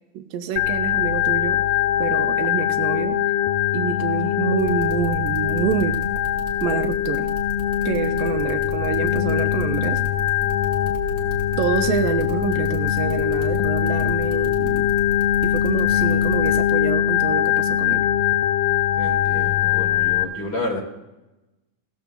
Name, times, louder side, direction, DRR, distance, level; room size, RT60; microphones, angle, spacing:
voice 1, 0.1-1.6 2.0-3.2 3.7-6.0 6.6-7.3 7.9-10.0 11.6-15.0 15.4-18.1, right 8 dB, 85° right, 7 dB, 2.4 m, -27 dB
Organ, 0.6-20.2, left 11 dB, 85° left, 2.3 m, -22 dB
sound 1, 4.6-16.6, right 1 dB, 25° right, 1.8 m, -35 dB
voice 2, 18.9-20.8, left 2 dB, 25° left, 0 dB, 1.5 m, -30 dB
17.0 x 14.0 x 2.3 m, 1.0 s
omnidirectional pair, 3.8 m